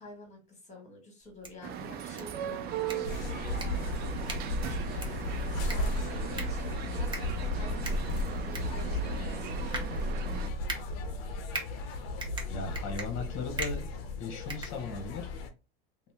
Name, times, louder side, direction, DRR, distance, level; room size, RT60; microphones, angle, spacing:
voice 1, 0.0-3.9 4.6-5.1 5.6-10.4, left 1 dB, 20° left, 2 dB, 1.5 m, -48 dB
sound 1, 1.2-15.3, right 3 dB, 15° right, 0.8 m, -43 dB
sound 2, 1.6-10.5, right 9 dB, 30° right, 0.4 m, -39 dB
sound 3, 3.0-15.5, left 2 dB, 65° left, 0.7 m, -34 dB
voice 2, 12.5-13.8 14.2-15.3, left 4 dB, 40° left, 5 dB, 1.0 m, -37 dB
2.7 x 2.1 x 3.4 m, 0.30 s
hypercardioid pair, 100°, 31 cm